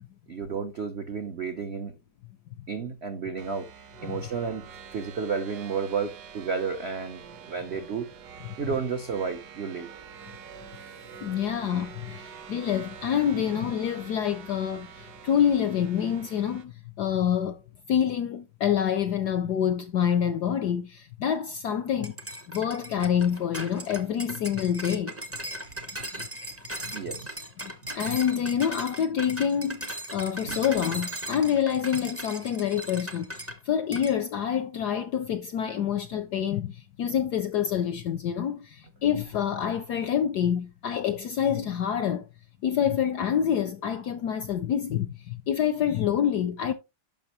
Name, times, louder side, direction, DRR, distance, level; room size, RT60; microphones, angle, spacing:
voice 1, 0.3-1.9 2.7-3.7 4.0-7.2 7.5-8.1 8.6-9.9 26.9-27.4 30.4-30.6, right 5 dB, 75° right, 0.6 m, -32 dB
sound 1, 3.4-16.6, right 7 dB, 55° right, 1.4 m, -46 dB
voice 2, 11.2-16.7 17.0-17.6 17.9-22.2 22.5-25.1 26.8-26.9 27.6-42.2 42.6-46.7, left 9 dB, 70° left, 0.9 m, -27 dB
sound 2, 22.0-33.6 33.9-34.2, right 1 dB, 20° right, 0.3 m, -38 dB
10.5 x 6.0 x 3.0 m
omnidirectional pair, 2.3 m